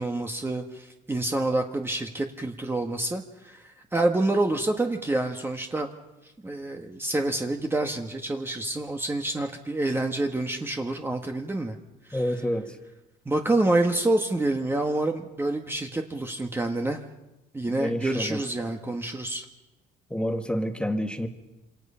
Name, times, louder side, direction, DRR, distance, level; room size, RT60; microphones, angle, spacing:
voice 1, 0.0-5.9 6.4-11.8 12.1-12.2 13.2-17.0 17.5-19.5, right 2 dB, 15° right, 1.6 m, -27 dB
voice 2, 12.1-12.8 17.8-18.4 20.1-21.3, equal, 5° left, 2.2 m, -28 dB
27.5 x 26.5 x 5.7 m
cardioid pair, 110°, 17 cm